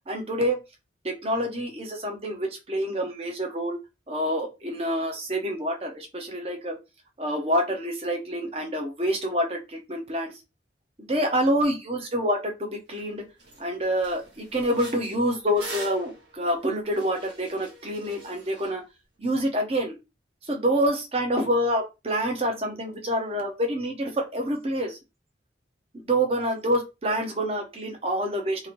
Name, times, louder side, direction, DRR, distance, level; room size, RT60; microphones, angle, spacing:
voice 1, 0.1-0.6 1.0-3.8 4.1-6.8 7.2-10.3 11.0-13.2 13.6-18.8 19.2-19.9 20.5-25.0 25.9-28.7, equal, 30° right, 3 dB, 0.7 m, -27 dB
sound 1, 12.9-13.0 13.4-13.6 14.0-18.7, equal, 70° right, 1.2 m, -42 dB
2.9 x 2.5 x 3.0 m, 0.26 s
head